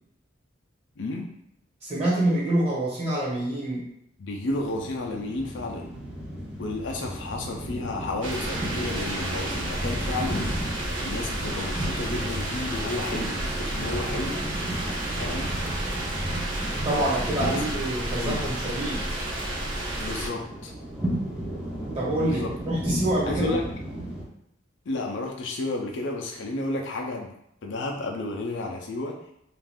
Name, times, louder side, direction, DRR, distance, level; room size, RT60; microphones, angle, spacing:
voice 1, 1.0-1.3 4.2-5.9 6.6-10.6 11.0-14.4 15.2-15.6 17.4-17.6 18.2-18.4 20.0-20.7 22.3-22.5 23.2-23.7 24.9-27.3 27.6-29.2, left 2 dB, 70° left, 1 dB, 0.4 m, -32 dB
voice 2, 1.8-3.9 16.8-19.0 21.9-23.5, right 1 dB, 35° right, -8 dB, 1.2 m, -26 dB
sound 1, 4.5-24.2, right 1 dB, 5° right, 0.6 m, -35 dB
sound 2, 8.2-20.3, right 1 dB, 80° right, 0.6 m, -31 dB
2.4 x 2.4 x 3.4 m, 0.76 s
head